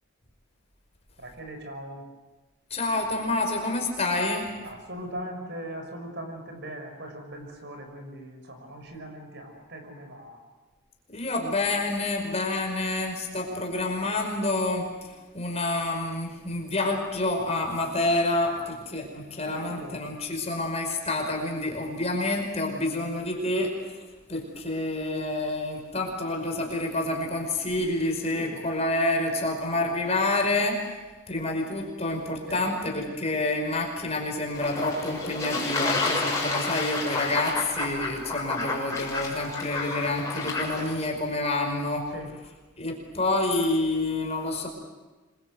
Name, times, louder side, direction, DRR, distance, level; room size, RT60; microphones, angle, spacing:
voice 1, 1.2-2.1 4.6-10.4 18.3-18.9 19.4-20.1 28.3-28.6 30.5-30.6 32.5-32.6 42.1-42.3, right 1 dB, 55° right, 5 dB, 6.0 m, -40 dB
voice 2, 2.7-4.5 11.1-23.8 24.3-30.9 31.3-42.1 42.8-44.7, left 2 dB, 30° left, 2 dB, 5.2 m, -28 dB
Fowl / Bird / Water, 34.5-41.1, left 3 dB, 15° left, 6.8 m, -30 dB
26.5 x 23.5 x 8.1 m, 1.2 s
head